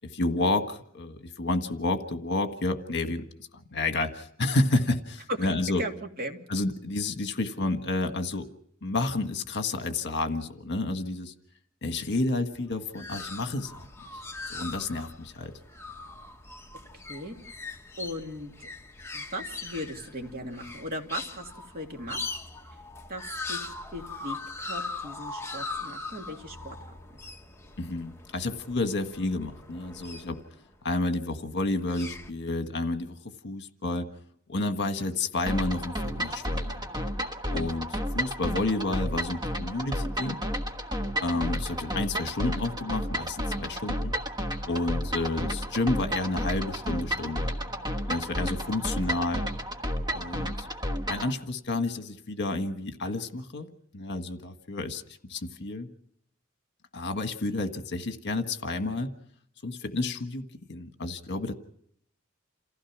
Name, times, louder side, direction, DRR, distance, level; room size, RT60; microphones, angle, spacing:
voice 1, 0.0-3.2 3.5-5.8 6.5-8.5 8.8-11.3 11.8-13.9 14.1-14.2 14.5-15.5 27.8-30.4 30.8-33.1 33.4-34.1 34.5-36.9 37.5-40.4 41.2-44.1 44.7-47.5 48.1-49.4 50.1-50.7 51.1-53.7 53.9-55.9 56.9-59.1 59.6-61.5, left 2 dB, 55° left, 7 dB, 1.6 m, -30 dB
voice 2, 5.4-6.4 17.1-17.4 18.0-18.7 19.1-21.5 21.7-22.3 23.1-26.9 41.2-41.4, equal, 45° right, 3 dB, 2.6 m, -38 dB
sound 1, 12.5-30.7 31.6-32.3, left 3 dB, 10° left, 1.1 m, -40 dB
sound 2, 35.5-51.3, equal, 20° right, 1.3 m, -32 dB
28.5 x 15.5 x 6.1 m, 0.70 s
head